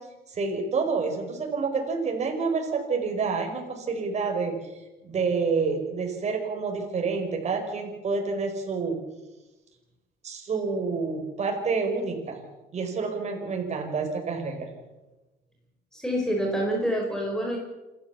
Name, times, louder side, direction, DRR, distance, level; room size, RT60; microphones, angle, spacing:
voice 1, 0.3-4.6 5.0-9.0 10.2-12.4 12.7-14.7, right 4 dB, 40° right, 3 dB, 5.3 m, -28 dB
voice 2, 15.9-17.6, equal, 5° left, 0 dB, 4.3 m, -27 dB
28.0 x 13.0 x 7.2 m, 1.1 s
cardioid pair, 110°, 17 cm